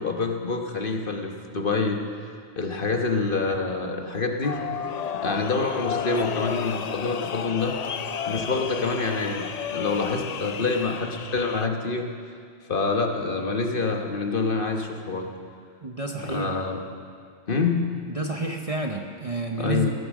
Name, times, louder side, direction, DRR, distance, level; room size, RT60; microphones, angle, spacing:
voice 1, 0.0-2.0 2.6-4.6 5.2-7.8 8.3-12.1 12.7-15.3 16.3-16.8 17.5-17.8 19.6-19.9, left 4 dB, 45° left, 3 dB, 1.3 m, -26 dB
sound 1, 4.4-11.7, left 8 dB, 70° left, 0.3 m, -32 dB
voice 2, 15.8-16.5 18.1-19.9, right 2 dB, 35° right, 3 dB, 0.8 m, -30 dB
18.0 x 10.0 x 6.2 m, 2.2 s
omnidirectional pair, 1.3 m